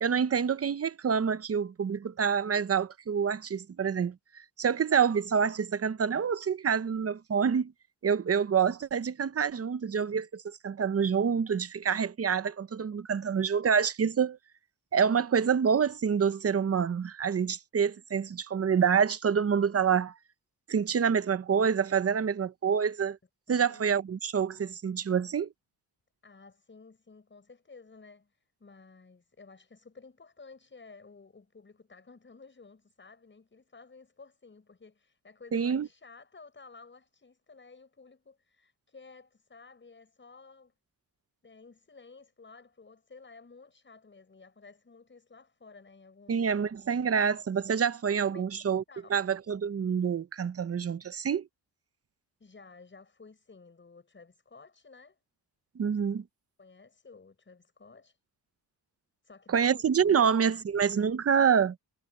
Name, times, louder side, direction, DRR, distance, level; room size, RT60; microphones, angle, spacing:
voice 1, 0.0-7.7 8.0-14.4 14.9-20.1 20.7-23.2 23.5-25.5 35.5-35.9 46.3-48.8 49.1-51.5 55.8-56.2 59.5-61.8, right 7 dB, 35° right, 0.7 m, -27 dB
voice 2, 23.5-23.8 26.2-40.7 41.4-46.5 48.2-49.1 52.4-55.2 55.9-56.1 56.6-58.2 59.2-59.8 60.1-60.6, left 4 dB, 30° left, 6.9 m, -54 dB
wide cardioid pair, 145°, 40 cm